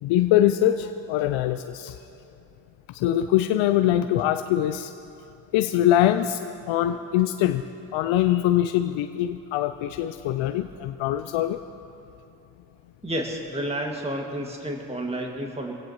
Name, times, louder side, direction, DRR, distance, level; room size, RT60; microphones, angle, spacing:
voice 1, 0.0-2.0 2.9-4.9 5.5-7.6 7.9-11.6, left 12 dB, 75° left, 9 dB, 0.6 m, -23 dB
voice 2, 13.0-15.7, right 1 dB, 10° right, 1 dB, 2.0 m, -30 dB
25.0 x 16.5 x 3.0 m, 2.8 s
hypercardioid pair, 40°, 48 cm